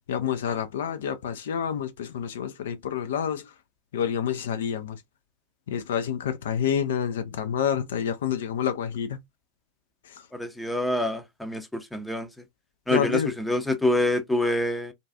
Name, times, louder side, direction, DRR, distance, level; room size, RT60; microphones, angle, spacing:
voice 1, 0.1-3.5 3.9-5.0 5.7-9.2 10.0-10.3 12.9-13.4, left 8 dB, 60° left, 0.3 m, -28 dB
voice 2, 10.3-12.3 12.9-14.9, left 1 dB, 5° left, 0.5 m, -26 dB
2.5 x 2.3 x 2.2 m
figure-of-eight pair, 90°, 0 cm